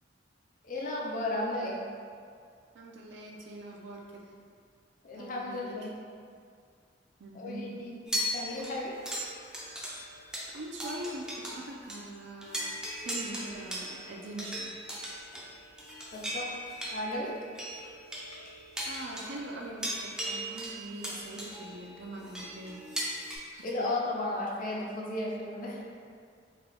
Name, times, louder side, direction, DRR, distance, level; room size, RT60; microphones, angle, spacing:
voice 1, 0.6-1.8 5.0-5.9 7.3-7.9 8.3-9.0 16.1-16.5 16.9-17.3 23.6-25.8, left 1 dB, 45° left, -3 dB, 0.5 m, -34 dB
voice 2, 2.7-4.3 5.1-5.7 7.2-7.8 10.5-14.8 18.8-22.8 23.5-23.9, right 1 dB, 65° right, -1 dB, 0.4 m, -43 dB
sound 1, 8.1-11.6 11.9-12.0 12.4-23.4, equal, 5° right, 0.4 m, -38 dB
3.6 x 2.3 x 3.3 m, 2.2 s
head